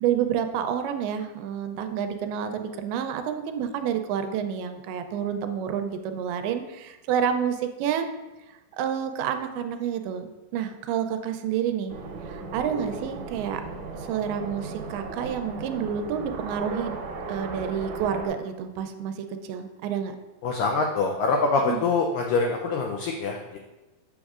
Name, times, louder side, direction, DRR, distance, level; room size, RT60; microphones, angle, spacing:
voice 1, 0.0-8.1 8.8-11.9 12.3-13.6 14.1-17.0 17.3-19.2 19.4-20.2 21.7-21.8, right 8 dB, 85° right, 7 dB, 2.5 m, -29 dB
sound 1, 11.9-18.3, right 3 dB, 70° right, 2.1 m, -36 dB
voice 2, 20.4-23.6, left 4 dB, 85° left, 2 dB, 1.9 m, -25 dB
8.5 x 6.2 x 2.4 m, 1.1 s
omnidirectional pair, 4.5 m